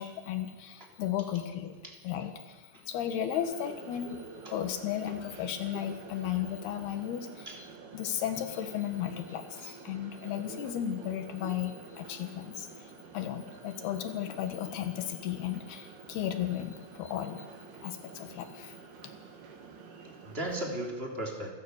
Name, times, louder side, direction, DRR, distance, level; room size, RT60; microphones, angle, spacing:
voice 1, 0.0-1.8 2.0-4.2 4.5-7.5 7.9-17.5 17.8-18.8, left 10 dB, 90° left, 7 dB, 3.7 m, -35 dB
sound 1, 3.3-20.9, right 5 dB, 80° right, 4.1 m, -49 dB
voice 2, 20.1-21.5, right 1 dB, 15° right, 0 dB, 3.3 m, -36 dB
28.5 x 15.5 x 6.6 m, 1.2 s
omnidirectional pair, 4.4 m